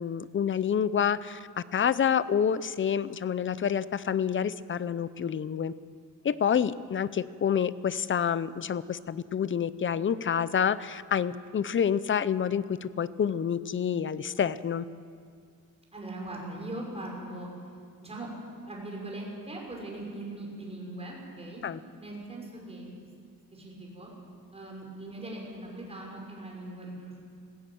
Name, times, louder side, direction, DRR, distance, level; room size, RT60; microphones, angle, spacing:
voice 1, 0.0-5.7 6.2-14.8 21.6-21.8, left 8 dB, 35° left, 16 dB, 0.6 m, -28 dB
voice 2, 15.9-17.5 18.0-18.3 18.7-21.6 22.0-22.9 23.5-24.1 24.5-27.2, right 2 dB, 15° right, -1 dB, 6.0 m, -40 dB
20.0 x 16.0 x 9.3 m, 2.3 s
cardioid pair, 130°, 36 cm